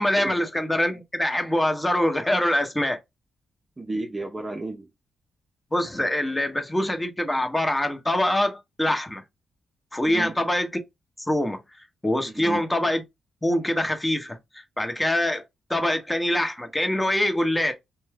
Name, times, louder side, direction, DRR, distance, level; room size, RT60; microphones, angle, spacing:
voice 1, 0.0-3.0 5.7-9.2 9.9-10.7 11.2-11.6 12.0-13.0 13.4-15.4 15.7-17.7, left 1 dB, 10° left, 0.9 m, -24 dB
voice 2, 3.8-4.9 10.0-10.4 12.2-12.6, right 2 dB, 25° right, 0.7 m, -32 dB
2.6 x 2.2 x 3.4 m
cardioid pair, 75°, 0 cm